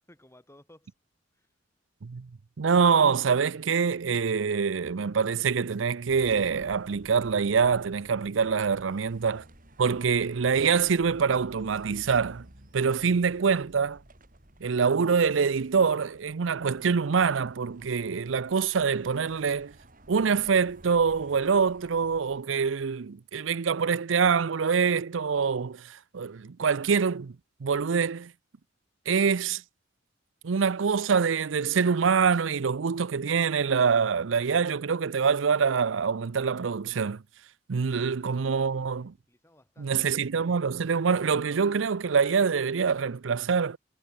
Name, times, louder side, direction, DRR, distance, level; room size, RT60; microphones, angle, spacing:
voice 1, 0.1-0.9 1.3-1.5 8.8-9.0 37.8-38.3 39.3-40.8, left 1 dB, 15° left, 6.2 m, -59 dB
voice 2, 2.6-9.4 9.8-12.4 12.7-14.0 14.6-19.7 20.1-27.3 27.6-28.3 29.1-29.6 30.4-37.2 37.7-39.1 39.8-43.8, right 6 dB, 80° right, 0.6 m, -25 dB
sound 1, 6.1-22.4, right 1 dB, 45° right, 5.8 m, -54 dB
head